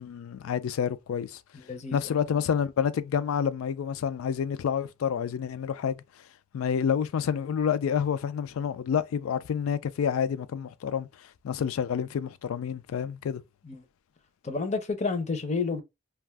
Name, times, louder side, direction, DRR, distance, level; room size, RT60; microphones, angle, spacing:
voice 1, 0.0-1.4 1.9-6.0 6.5-13.4, left 7 dB, 85° left, 0.3 m, -29 dB
voice 2, 1.5-2.2 13.6-13.9 14.4-15.8, left 4 dB, 35° left, 0.5 m, -30 dB
2.4 x 2.3 x 3.3 m
head